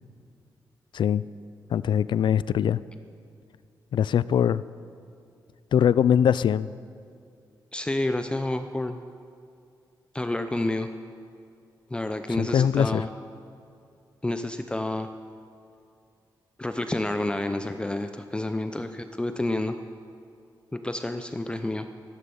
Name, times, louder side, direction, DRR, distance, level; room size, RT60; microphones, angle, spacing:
voice 1, 0.9-1.2 1.7-2.8 3.9-4.6 5.7-6.7 12.3-13.0, left 9 dB, 80° left, 17 dB, 0.4 m, -22 dB
voice 2, 7.7-9.0 10.1-10.9 11.9-13.1 14.2-15.1 16.6-19.8 20.7-21.9, left 1 dB, 10° left, 8 dB, 0.5 m, -29 dB
15.0 x 11.0 x 6.9 m, 2.4 s
wide cardioid pair, 135°, 8 cm